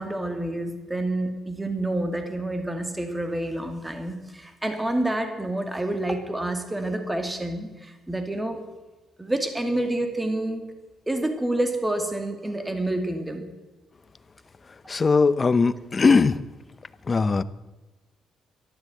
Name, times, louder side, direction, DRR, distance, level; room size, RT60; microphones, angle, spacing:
voice 1, 0.0-8.7 9.2-10.7 11.1-13.5, right 1 dB, 10° right, 6 dB, 2.1 m, -28 dB
voice 2, 14.9-16.4 17.1-17.4, left 4 dB, 30° left, 15 dB, 0.7 m, -20 dB
12.5 x 12.0 x 8.0 m, 1.2 s
cardioid pair, 90°, 0 cm